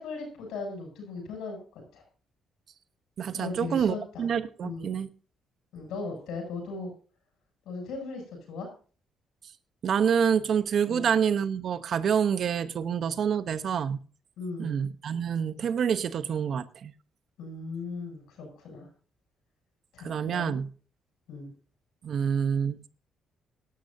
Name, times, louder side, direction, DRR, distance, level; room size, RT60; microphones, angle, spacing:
voice 1, 0.0-2.0 3.3-4.3 4.6-5.0 5.7-6.9 7.7-8.2 8.5-8.7 10.9-11.1 14.4-14.8 17.4-18.9 19.9-20.6 21.3-21.5, left 3 dB, 85° left, 7.7 m, -38 dB
voice 2, 3.2-5.1 9.8-14.0 14.6-16.9 20.0-20.7 22.0-22.8, right 7 dB, 60° right, 0.9 m, -27 dB
17.5 x 11.5 x 2.8 m
cardioid pair, 90°, 0 cm